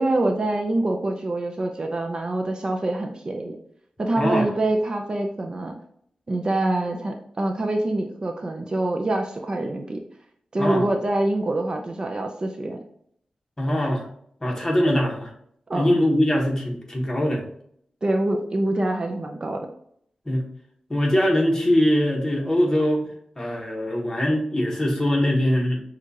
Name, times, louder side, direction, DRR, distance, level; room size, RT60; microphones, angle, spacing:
voice 1, 0.0-3.6 4.0-5.7 6.3-10.0 10.5-12.8 15.7-15.9 18.0-19.7, right 2 dB, 35° right, 3 dB, 0.5 m, -25 dB
voice 2, 4.2-4.5 10.6-10.9 13.6-14.0 14.4-15.3 15.7-17.4 20.3-20.4 20.9-23.0 23.4-25.8, equal, 20° left, 0 dB, 1.2 m, -22 dB
6.1 x 2.4 x 2.9 m, 0.67 s
wide cardioid pair, 80°, 2 cm